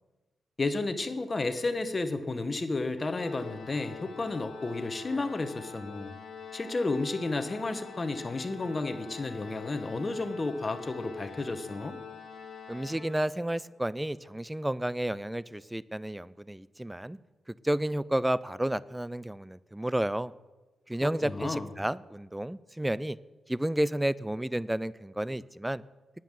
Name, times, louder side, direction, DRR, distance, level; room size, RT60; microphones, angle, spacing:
voice 1, 0.6-6.1 6.5-12.0 21.0-21.7, left 3 dB, 25° left, 9 dB, 1.0 m, -32 dB
Organ, 3.0-13.7, left 6 dB, 75° left, 1.7 m, -46 dB
voice 2, 12.7-17.2 17.6-20.3 20.9-23.2 23.5-25.8, right 1 dB, 5° right, 19 dB, 0.3 m, -31 dB
9.3 x 9.3 x 7.6 m, 1.2 s
wide cardioid pair, 125°, 0 cm